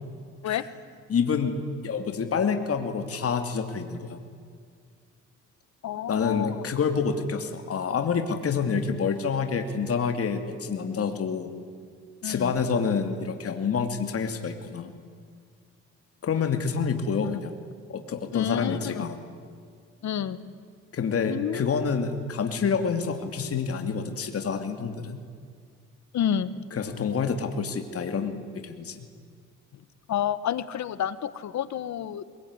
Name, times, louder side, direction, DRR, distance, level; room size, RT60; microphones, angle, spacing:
voice 1, 1.1-4.2 6.1-11.5 12.2-14.9 16.2-17.5 17.9-19.1 20.9-25.2 26.7-29.0, left 5 dB, 50° left, 6 dB, 2.8 m, -28 dB
voice 2, 5.8-6.7 12.2-12.5 17.2-17.4 18.3-19.1 20.0-20.5 21.3-21.6 26.1-26.6 30.1-32.2, left 9 dB, 65° left, 15 dB, 1.4 m, -29 dB
22.5 x 21.5 x 9.8 m, 2.1 s
cardioid pair, 90°, 30 cm